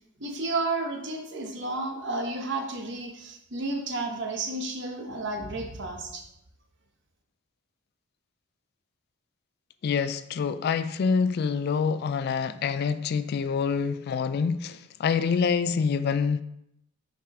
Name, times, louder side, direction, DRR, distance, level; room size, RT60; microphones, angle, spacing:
voice 1, 0.2-6.2, right 2 dB, 60° right, 1.0 m, -32 dB
voice 2, 9.8-16.4, left 5 dB, 50° left, 0.3 m, -26 dB
5.6 x 4.9 x 3.7 m
head